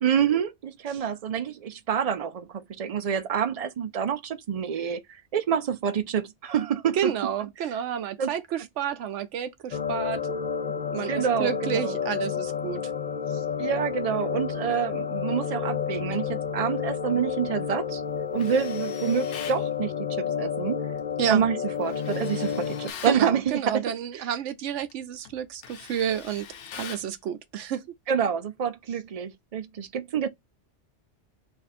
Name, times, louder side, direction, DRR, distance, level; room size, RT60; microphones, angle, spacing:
voice 1, 0.0-7.1 7.6-7.7 8.2-8.3 11.1-11.9 13.6-18.0 18.3-20.9 21.3-23.8 24.1-24.2 28.1-30.3, right 8 dB, 65° right, 0.3 m, -27 dB
voice 2, 7.0-10.2 10.9-12.8 13.3-13.4 21.2-21.5 23.1-26.4 26.7-27.9, right 9 dB, 90° right, 0.9 m, -30 dB
sound 1, 9.7-22.9, left 7 dB, 55° left, 0.5 m, -30 dB
Tools, 18.4-19.6 21.8-23.2 24.7-24.9 25.3-27.1, left 8 dB, 85° left, 1.0 m, -42 dB
3.5 x 2.5 x 4.0 m
omnidirectional pair, 1.2 m